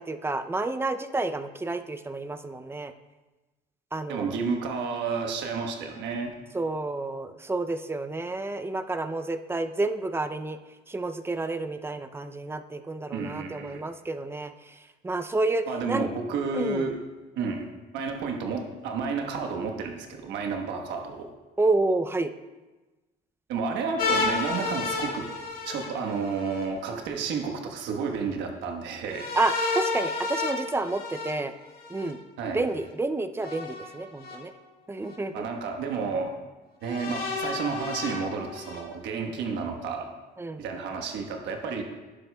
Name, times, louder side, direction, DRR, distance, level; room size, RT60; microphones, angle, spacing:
voice 1, 0.0-2.9 3.9-4.4 6.5-10.6 10.9-14.5 15.0-16.1 16.5-16.8 21.6-22.3 29.3-31.5 31.9-32.2 32.5-34.5 34.9-35.5 40.4-40.6, right 2 dB, 15° right, 9 dB, 0.4 m, -29 dB
voice 2, 4.1-6.3 13.1-13.8 15.7-17.0 17.4-17.7 17.9-21.3 23.5-25.3 25.6-29.3 32.4-32.6 35.3-36.3 36.8-40.1 40.6-41.8, right 5 dB, 85° right, 3 dB, 1.2 m, -31 dB
sound 1, 24.0-26.6 29.1-32.1 33.4-34.3 35.1-35.2 36.8-38.8, left 3 dB, 55° left, 1.7 m, -31 dB
11.0 x 10.0 x 2.2 m, 1.2 s
cardioid pair, 110°, 18 cm